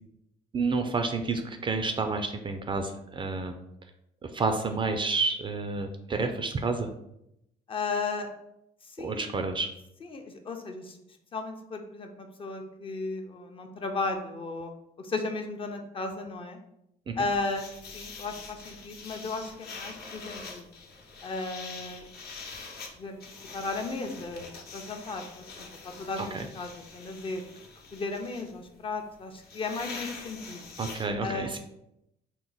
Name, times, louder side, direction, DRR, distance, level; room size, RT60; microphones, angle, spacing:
voice 1, 0.5-3.5 4.2-6.9 9.0-9.7 17.1-17.2 26.2-26.4 30.8-31.6, right 4 dB, 30° right, 6 dB, 0.4 m, -30 dB
voice 2, 7.7-8.3 8.8-9.3 10.0-11.0 11.3-14.7 15.0-16.6 17.2-17.6 17.9-20.6 21.2-22.1 22.9-23.2 23.5-24.5 24.7-25.3 25.6-27.4 27.9-30.6 31.2-31.5, left 3 dB, 30° left, 4 dB, 0.6 m, -35 dB
sound 1, 17.3-31.1, left 4 dB, 65° left, 0.9 m, -44 dB
4.5 x 2.0 x 3.9 m, 0.81 s
cardioid pair, 110°, 17 cm